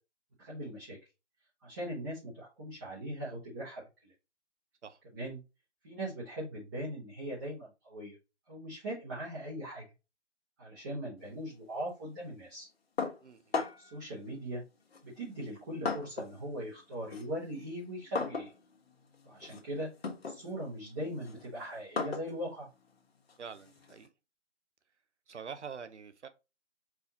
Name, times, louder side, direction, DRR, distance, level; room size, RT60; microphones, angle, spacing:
voice 1, 0.4-1.0 1.6-4.1 5.1-5.4 5.8-8.2 8.5-9.8 10.6-12.7 13.8-14.6 15.0-18.5 19.2-19.9 20.2-22.7, right 1 dB, 15° right, 1.0 m, -40 dB
sound 1, 13.0-14.0 14.9-16.4 16.8-24.1, left 4 dB, 55° left, 1.4 m, -39 dB
voice 2, 13.2-13.5 23.4-24.1 25.3-26.3, right 6 dB, 75° right, 0.9 m, -45 dB
4.8 x 2.7 x 4.0 m
hypercardioid pair, 160°, 35 cm